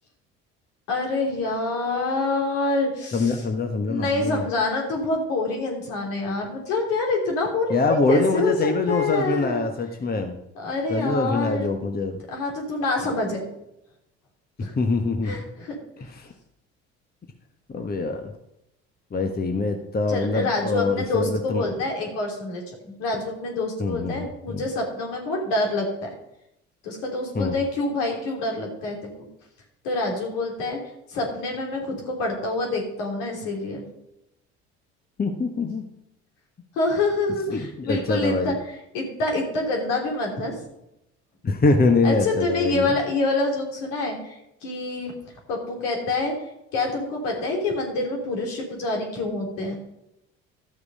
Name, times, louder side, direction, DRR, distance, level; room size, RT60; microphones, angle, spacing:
voice 1, 0.9-3.4 3.8-9.6 10.5-11.7 12.3-13.5 14.6-14.7 15.2-15.7 20.1-26.1 26.8-29.0 29.8-30.8 31.1-33.8 36.7-38.5 38.9-40.6 42.0-45.1 45.5-46.3 46.7-49.8, left 2 dB, 70° left, 0 dB, 3.5 m, -26 dB
voice 2, 3.1-4.5 7.7-10.4 10.9-12.2 14.8-15.5 16.0-16.3 17.7-18.3 19.1-21.7 23.8-24.7 27.3-27.6 35.2-35.8 37.5-38.5 41.4-42.9, left 3 dB, 25° left, 5 dB, 1.3 m, -24 dB
12.5 x 6.6 x 5.5 m, 0.84 s
hypercardioid pair, 60°, 34 cm